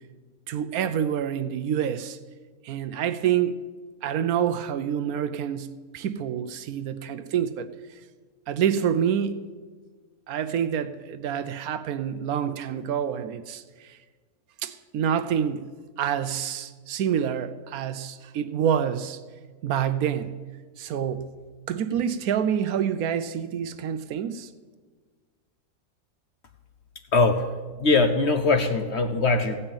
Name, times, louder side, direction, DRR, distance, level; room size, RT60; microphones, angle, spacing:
voice 1, 0.5-2.2 2.6-3.6 4.0-7.7 8.5-9.4 10.3-14.0 14.6-15.7 16.0-19.2 19.6-20.4 20.8-21.3 21.7-24.5, right 9 dB, 70° right, 1.0 m, -27 dB
voice 2, 27.1-27.5 27.8-29.7, left 3 dB, 55° left, 0.9 m, -21 dB
15.5 x 5.5 x 8.8 m
omnidirectional pair, 1.7 m